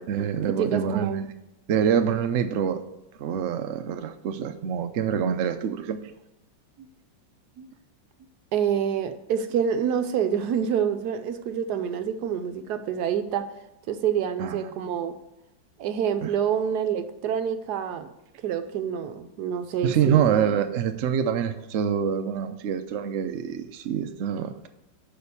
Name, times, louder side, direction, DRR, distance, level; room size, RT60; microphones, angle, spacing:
voice 1, 0.1-1.3 1.7-2.8 3.2-6.0 14.4-14.7 16.2-16.3 19.8-24.7, right 8 dB, 85° right, 7 dB, 0.6 m, -26 dB
voice 2, 0.6-1.2 7.6-7.7 8.5-13.5 13.9-15.1 15.8-18.1 18.4-20.3, right 8 dB, 70° right, 9 dB, 1.1 m, -27 dB
6.6 x 5.2 x 6.9 m, 0.92 s
omnidirectional pair, 2.0 m